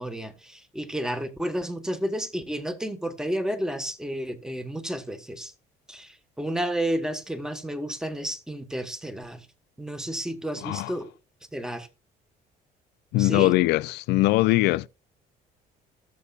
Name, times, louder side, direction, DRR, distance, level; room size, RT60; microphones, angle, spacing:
voice 1, 0.0-5.5 5.9-9.5 9.8-11.1 11.5-11.9 13.2-13.5, right 1 dB, 5° right, 1.3 m, -31 dB
voice 2, 10.6-10.9 13.1-14.9, left 18 dB, 85° left, 0.4 m, -21 dB
17.5 x 6.8 x 2.4 m
cardioid pair, 110°, 17 cm